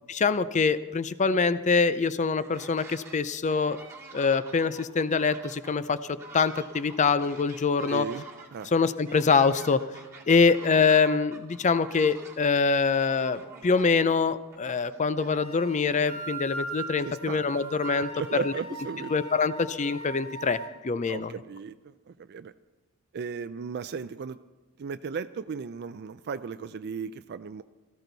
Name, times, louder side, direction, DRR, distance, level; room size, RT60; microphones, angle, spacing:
voice 1, 0.1-3.8 4.1-6.0 6.3-8.1 8.7-9.8 10.3-18.1 18.4-18.5 19.1-21.3, left 5 dB, 35° left, 14 dB, 0.5 m, -24 dB
sound 1, 2.2-3.2 3.5-15.8, right 4 dB, 15° right, 2.0 m, -48 dB
voice 2, 7.9-8.2 8.5-8.7 17.0-17.5 18.1-19.1 21.1-22.5 23.1-24.4 24.8-27.6, right 5 dB, 50° right, 12 dB, 0.4 m, -36 dB
sound 2, 15.4-20.7, right 3 dB, 75° left, 3.0 m, -39 dB
17.5 x 14.5 x 4.0 m, 1.1 s
head